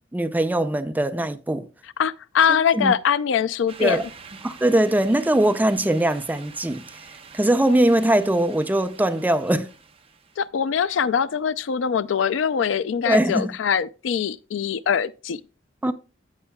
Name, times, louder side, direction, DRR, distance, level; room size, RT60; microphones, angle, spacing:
voice 1, 0.0-1.6 2.7-2.9 3.8-4.0 4.4-6.8 7.3-9.7 13.1-13.5 15.8-15.9, right 1 dB, 10° right, 0.4 m, -21 dB
voice 2, 2.0-4.0 10.4-15.4, left 7 dB, 75° left, 0.4 m, -22 dB
sound 1, 3.7-10.4, right 5 dB, 30° right, 1.0 m, -46 dB
15.5 x 5.6 x 2.2 m
head